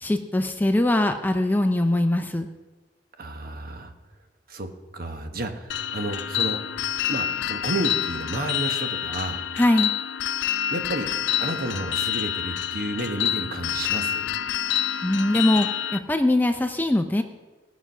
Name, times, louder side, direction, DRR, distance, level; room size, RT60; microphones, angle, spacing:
voice 1, 0.0-2.5 9.6-9.9 15.0-17.2, left 1 dB, 10° left, 7 dB, 0.5 m, -22 dB
voice 2, 3.2-3.9 4.5-4.7 4.9-6.6 7.1-9.4 10.7-11.1 11.4-14.3, right 2 dB, 50° right, 5 dB, 1.1 m, -31 dB
sound 1, 5.7-16.0, left 10 dB, 70° left, 0.4 m, -27 dB
18.0 x 6.1 x 5.5 m, 1.2 s
head